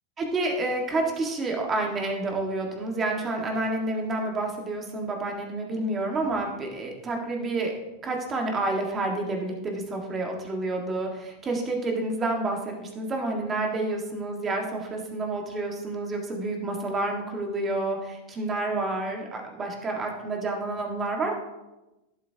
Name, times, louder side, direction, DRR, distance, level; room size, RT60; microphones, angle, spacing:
voice 1, 0.2-7.7 8.0-21.3, right 2 dB, 25° right, 1 dB, 1.7 m, -29 dB
11.0 x 8.0 x 2.9 m, 1.0 s
supercardioid pair, 130°, 0 cm